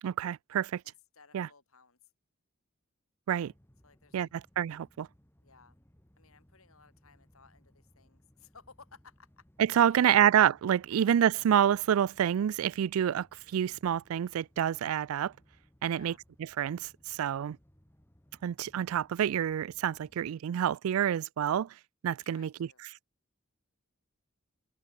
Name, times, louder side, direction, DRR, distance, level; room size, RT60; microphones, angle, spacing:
voice 1, 0.0-0.8 1.3-1.5 3.3-3.5 4.1-4.3 4.6-5.1 9.7-15.3 15.8-16.1 16.6-17.6 18.4-21.7 22.0-22.7, right 9 dB, 80° right, 0.3 m, -27 dB
voice 2, 0.8-2.1 3.8-4.3 5.4-5.8 6.2-9.5 9.8-10.2 10.9-11.0 15.9-16.2 22.2-22.8, left 5 dB, 85° left, 3.9 m, -59 dB
sound 1, 3.4-20.3, equal, 10° left, 1.6 m, -64 dB
head